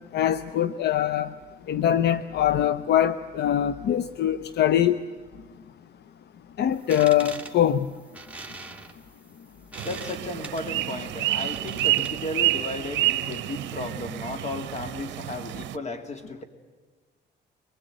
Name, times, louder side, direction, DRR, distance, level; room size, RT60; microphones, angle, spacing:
voice 1, 0.1-1.3 1.7-5.0 6.6-7.9, left 11 dB, 65° left, 12 dB, 0.7 m, -23 dB
sound 1, 6.7-12.4, right 3 dB, 5° right, 2.1 m, -42 dB
voice 2, 9.8-16.4, left 2 dB, 40° left, 8 dB, 2.3 m, -34 dB
sound 2, 9.8-15.8, right 16 dB, 85° right, 0.6 m, -29 dB
23.0 x 20.5 x 9.0 m, 1.4 s
cardioid pair, 110°, 18 cm